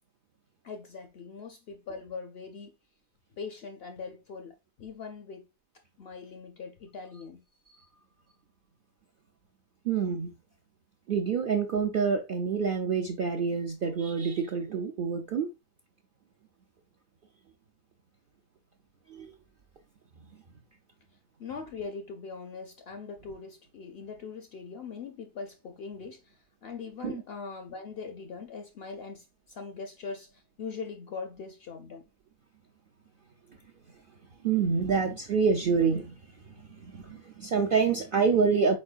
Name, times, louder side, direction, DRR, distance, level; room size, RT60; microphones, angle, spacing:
voice 1, 0.6-2.7 3.4-5.5 6.0-7.4 21.4-32.0, left 5 dB, 60° left, 0.6 m, -41 dB
voice 2, 9.8-10.3 11.1-15.5 19.1-19.3 27.0-27.2 34.4-36.2 36.5-38.8, right 5 dB, 65° right, 0.5 m, -27 dB
4.4 x 4.4 x 2.4 m
omnidirectional pair, 1.5 m